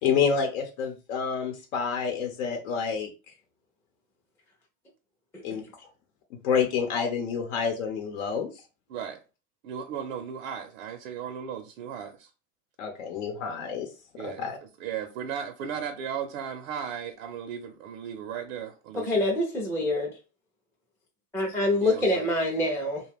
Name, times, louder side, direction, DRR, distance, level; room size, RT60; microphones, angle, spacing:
voice 1, 0.0-3.1 5.4-5.6 6.4-8.5 12.8-13.9 14.2-14.6, left 6 dB, 80° left, 0.8 m, -28 dB
voice 2, 8.9-9.2 9.6-12.3 14.2-14.5 14.8-19.2 21.8-22.3, right 8 dB, 90° right, 0.6 m, -36 dB
voice 3, 18.9-20.1 21.3-23.0, left 1 dB, 5° left, 0.4 m, -26 dB
2.5 x 2.2 x 3.4 m
supercardioid pair, 125°, 39 cm